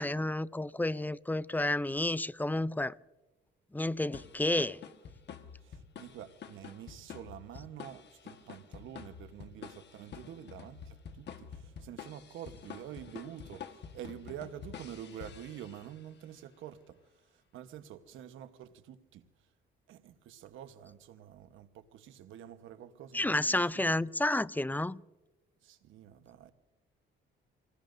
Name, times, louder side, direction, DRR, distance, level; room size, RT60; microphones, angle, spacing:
voice 1, 0.0-2.9 3.7-4.8 23.1-25.0, left 1 dB, 10° left, 0.4 m, -30 dB
sound 1, 4.1-16.1, left 7 dB, 60° left, 1.5 m, -49 dB
voice 2, 5.6-17.0 17.5-19.2 19.9-23.8 25.6-26.5, right 10 dB, 85° right, 1.1 m, -47 dB
27.0 x 19.5 x 2.6 m
cardioid pair, 90°, 20 cm